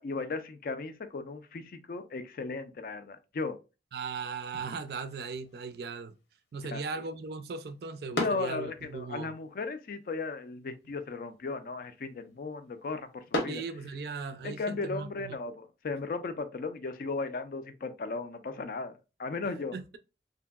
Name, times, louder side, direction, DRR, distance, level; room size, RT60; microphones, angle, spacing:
voice 1, 0.0-3.6 6.7-6.8 8.1-13.6 14.4-19.7, left 3 dB, 50° left, 0.4 m, -36 dB
voice 2, 3.9-6.1 6.5-9.3 13.5-15.4 19.7-20.0, right 4 dB, 60° right, 0.3 m, -38 dB
sound 1, 4.4-14.4, left 1 dB, 80° left, 0.9 m, -42 dB
2.9 x 2.6 x 2.3 m
head